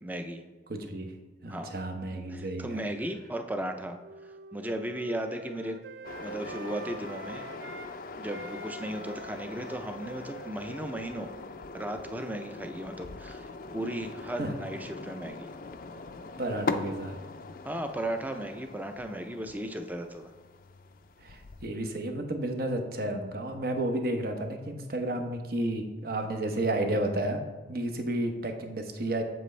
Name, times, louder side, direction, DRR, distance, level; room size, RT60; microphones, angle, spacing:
voice 1, 0.0-0.4 1.5-1.7 2.3-4.0 4.5-5.8 6.2-7.5 8.2-11.3 11.7-15.5 17.6-20.3, right 1 dB, 10° right, 5 dB, 0.5 m, -36 dB
voice 2, 0.7-1.1 1.4-2.8 14.4-14.5 16.4-17.2 21.2-27.4 27.7-29.2, right 1 dB, 55° right, 5 dB, 0.9 m, -32 dB
Wind instrument woodwind instrument, 3.4-7.9 8.2-12.7, right 3 dB, 70° right, 0.5 m, -47 dB
sound 1, 6.0-21.7, left 3 dB, 50° left, 0.4 m, -41 dB
7.7 x 7.6 x 3.3 m, 1.3 s
head